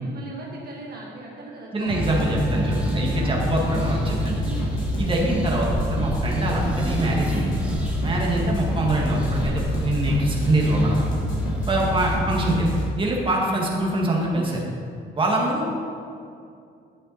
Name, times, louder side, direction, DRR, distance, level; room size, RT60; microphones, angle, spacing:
voice 1, 0.0-2.8 3.2-3.5 4.4-4.7, right 2 dB, 50° right, -3 dB, 1.8 m, -40 dB
voice 2, 1.7-4.4 5.0-7.7 8.0-11.0 11.7-14.6 15.2-15.7, right 1 dB, 25° right, -3 dB, 2.0 m, -24 dB
sound 1, 1.9-12.8, left 1 dB, 85° left, 2.5 m, -27 dB
sound 2, 1.9-12.1, right 1 dB, 5° right, 2.0 m, -33 dB
11.0 x 7.5 x 4.2 m, 2.4 s
cardioid pair, 90°, 20 cm